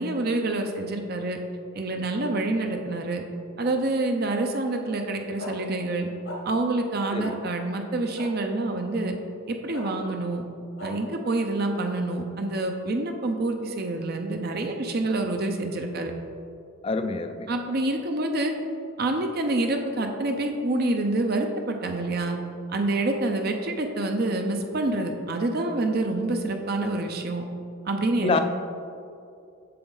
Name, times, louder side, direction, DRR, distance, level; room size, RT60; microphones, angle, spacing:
voice 1, 0.0-1.4 1.7-3.2 3.6-6.1 6.4-9.2 9.5-10.4 10.8-16.1 17.5-18.5 19.0-22.4 22.7-27.5 27.9-28.4, right 2 dB, 45° right, 4 dB, 0.5 m, -27 dB
sound 1, 5.4-5.5 6.2-6.4 7.2-7.3 8.1-8.3 9.7-9.9 10.8-10.9, left 1 dB, 75° left, 1.5 m, -37 dB
voice 2, 16.8-17.5 28.2-28.4, left 3 dB, 25° left, 8 dB, 0.3 m, -26 dB
7.7 x 7.0 x 3.9 m, 2.5 s
head